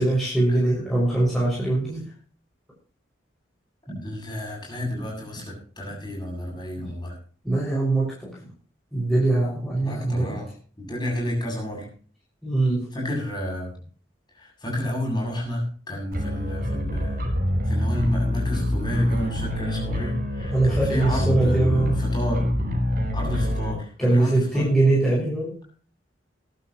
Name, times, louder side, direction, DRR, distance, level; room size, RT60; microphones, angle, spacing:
voice 1, 0.0-2.1 3.9-4.0 6.8-6.9 7.4-8.4 8.9-10.4 12.4-12.9 20.5-22.0 24.0-25.6, right 2 dB, ahead, -7 dB, 5.9 m, -22 dB
voice 2, 4.0-7.2 9.8-10.5 10.8-11.9 12.9-13.7 14.3-17.3 17.7-22.5 23.1-24.8, left 1 dB, 20° left, -1 dB, 7.6 m, -31 dB
sound 1, 16.1-23.7, left 1 dB, 45° right, 4.1 m, -26 dB
21.0 x 11.5 x 3.0 m, 0.42 s
head